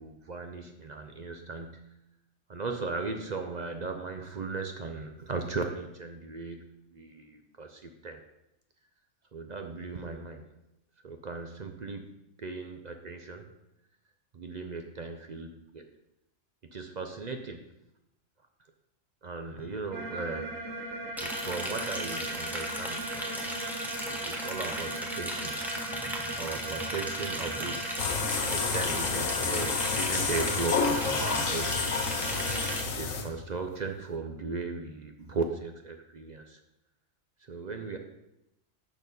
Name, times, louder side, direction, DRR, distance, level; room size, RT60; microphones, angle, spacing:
voice 1, 0.0-1.9 2.5-8.2 9.3-10.4 11.0-12.0 12.4-13.5 14.3-15.8 16.7-17.7 19.2-23.6 24.1-25.5 26.4-27.7 28.5-31.8 32.8-36.6 37.5-38.0, right 4 dB, 45° right, 5 dB, 0.6 m, -37 dB
sound 1, 19.9-32.8, right 2 dB, 85° right, 1.5 m, -38 dB
Liquid, 21.2-32.8, equal, ahead, 0.9 m, -37 dB
sound 2, 28.0-33.6, left 5 dB, 90° left, 1.3 m, -30 dB
6.4 x 6.2 x 5.3 m, 0.86 s
omnidirectional pair, 1.3 m